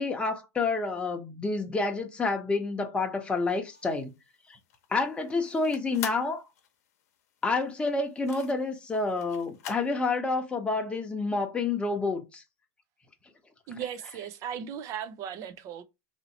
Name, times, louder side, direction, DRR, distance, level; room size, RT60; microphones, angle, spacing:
voice 1, 0.0-4.1 4.5-4.6 4.9-6.4 7.4-12.4, left 3 dB, 15° left, 0.9 m, -29 dB
sound 1, 3.6-9.9, left 9 dB, 70° left, 0.8 m, -45 dB
voice 2, 13.7-15.8, right 9 dB, 40° right, 0.6 m, -37 dB
3.0 x 2.7 x 4.0 m
hypercardioid pair, 115°, 9 cm